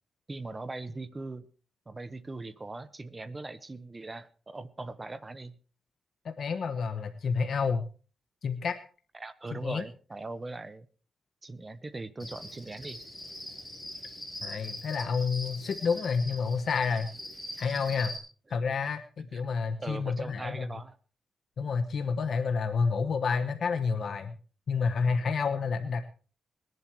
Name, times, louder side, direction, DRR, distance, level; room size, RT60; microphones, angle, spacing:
voice 1, 0.3-1.4 1.9-5.6 9.1-10.9 11.4-13.0 19.2-19.4 19.8-21.0, right 2 dB, 20° right, 12 dB, 0.9 m, -40 dB
voice 2, 6.2-7.8 8.4-8.8 9.5-9.8 14.4-17.1 17.6-18.1 18.5-19.0 19.3-20.7 21.6-24.3 24.7-26.1, left 5 dB, 55° left, 7 dB, 1.1 m, -29 dB
Cricket, 12.2-18.2, left 1 dB, ahead, 6.0 m, -42 dB
20.0 x 11.0 x 4.6 m, 0.38 s
wide cardioid pair, 155°, 0 cm